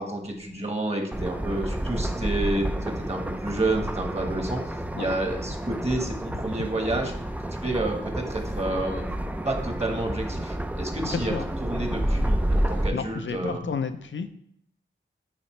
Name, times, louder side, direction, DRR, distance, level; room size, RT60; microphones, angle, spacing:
voice 1, 0.0-4.6 5.0-7.1 7.6-9.0 9.4-11.3 11.6-13.6, right 2 dB, 30° right, 1.3 m, -29 dB
sound 1, 1.1-12.9, right 1 dB, 5° right, 0.4 m, -30 dB
voice 2, 11.0-11.5 11.9-14.3, left 5 dB, 70° left, 0.4 m, -33 dB
9.4 x 4.0 x 3.1 m
wide cardioid pair, 65°, 21 cm